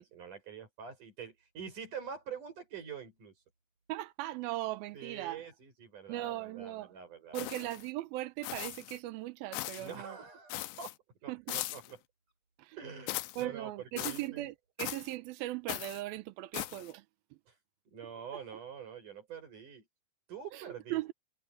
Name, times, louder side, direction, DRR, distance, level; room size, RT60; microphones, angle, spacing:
voice 1, 0.0-3.3 4.9-7.7 9.8-11.0 11.2-12.0 12.8-14.5 17.5-17.6 17.9-19.9 20.3-21.1, right 7 dB, 45° right, 7.6 m, -46 dB
voice 2, 3.9-5.4 6.1-6.9 7.3-10.2 11.3-11.6 12.6-12.8 13.4-17.0 20.5-21.1, right 16 dB, 75° right, 2.3 m, -38 dB
sound 1, 7.3-7.9 8.4-9.0 9.5-9.9 10.5-10.9 11.5-11.9 13.1-13.4 14.0-14.3 14.8-15.2 15.7-16.0 16.5-16.9, left 17 dB, 90° left, 3.0 m, -39 dB
omnidirectional pair, 5.1 m